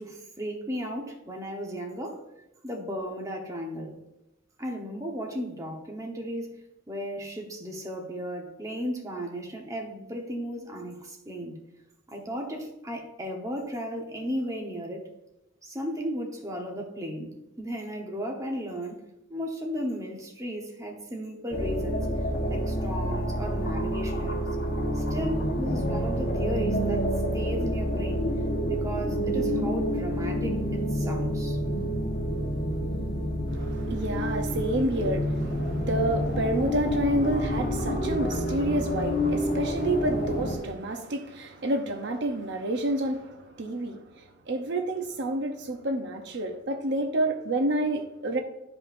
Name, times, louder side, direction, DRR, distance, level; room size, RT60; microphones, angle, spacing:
voice 1, 0.0-2.2 2.6-4.0 4.6-6.6 6.9-11.6 12.1-15.1 15.6-19.0 19.3-22.1 22.5-24.5 24.9-28.3 28.7-31.6, equal, 15° right, 0 dB, 1.0 m, -35 dB
sound 1, 21.5-40.6, equal, 50° left, 1.3 m, -28 dB
voice 2, 33.5-48.4, right 1 dB, 60° right, 4 dB, 0.7 m, -29 dB
10.5 x 5.2 x 2.6 m, 0.90 s
head